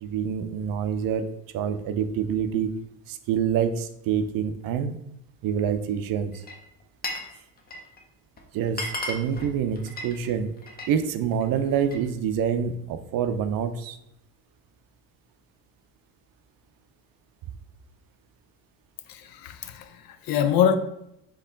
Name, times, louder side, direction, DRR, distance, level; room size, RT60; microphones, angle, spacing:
voice 1, 0.0-1.3 1.5-2.8 3.1-5.0 5.4-6.4 8.5-10.5 10.9-14.0, right 8 dB, 60° right, 0.5 m, -26 dB
Glass, 6.3-7.3 7.6-8.0 8.4-8.5 8.7-11.0 11.3-12.1, left 1 dB, 25° left, 0.7 m, -35 dB
voice 2, 19.1-20.8, left 9 dB, 65° left, 0.6 m, -24 dB
4.4 x 3.0 x 3.7 m
cardioid pair, 120°, 39 cm